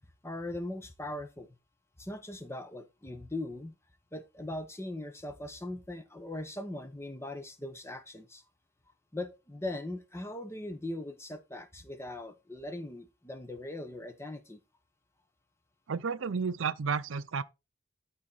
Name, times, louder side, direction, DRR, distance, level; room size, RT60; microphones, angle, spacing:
voice 1, 0.2-1.5 2.0-3.7 4.1-8.4 9.1-14.6, left 1 dB, 15° left, 1.0 m, -40 dB
voice 2, 15.9-17.4, right 5 dB, 80° right, 0.6 m, -32 dB
11.5 x 4.3 x 4.0 m
head